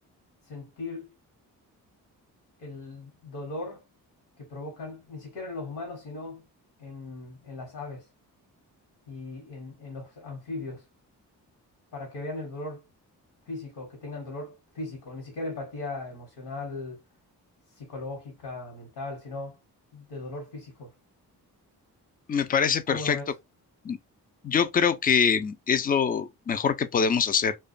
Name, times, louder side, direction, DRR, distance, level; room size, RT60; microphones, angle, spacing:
voice 1, 0.5-1.1 2.6-3.8 4.4-6.4 6.8-8.1 9.1-10.8 11.9-12.8 13.5-17.0 17.7-19.6 19.9-20.9 22.9-23.3, left 2 dB, 75° left, 1.1 m, -38 dB
voice 2, 22.3-23.2 23.8-24.0 24.4-27.6, left 6 dB, 25° left, 0.3 m, -24 dB
2.4 x 2.2 x 2.4 m
supercardioid pair, 55°, 41 cm